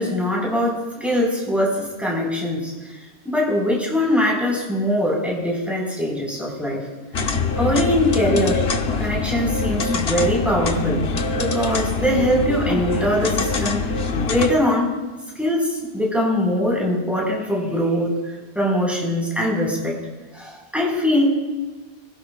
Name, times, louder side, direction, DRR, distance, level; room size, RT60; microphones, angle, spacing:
voice 1, 0.0-2.7 3.2-6.8 7.6-8.6 9.0-11.0 11.3-13.8 14.3-14.9 15.4-18.1 18.5-20.0 20.3-21.3, left 1 dB, ahead, -3 dB, 4.7 m, -22 dB
sound 1, 7.1-14.5, left 4 dB, 70° left, 1.2 m, -24 dB
25.0 x 16.5 x 2.4 m, 1.3 s
omnidirectional pair, 1.1 m